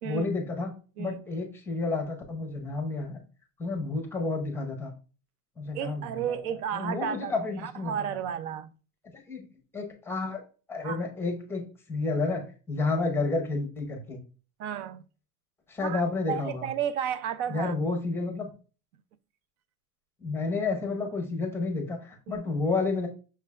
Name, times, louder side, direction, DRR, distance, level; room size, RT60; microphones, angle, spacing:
voice 1, 0.0-0.7 1.0-3.2 3.6-4.9 5.6-6.2 6.7-7.9 9.3-9.4 9.7-10.4 10.7-11.6 11.9-14.2 15.7-16.7 17.5-18.5 20.2-23.1, left 3 dB, 5° left, 0.6 m, -30 dB
voice 2, 5.7-7.3 7.6-8.7 10.8-11.1 14.6-15.0 15.8-16.0 16.3-17.7 22.3-22.4, right 9 dB, 75° right, 0.6 m, -32 dB
5.7 x 3.2 x 2.3 m
supercardioid pair, 145°, 45 cm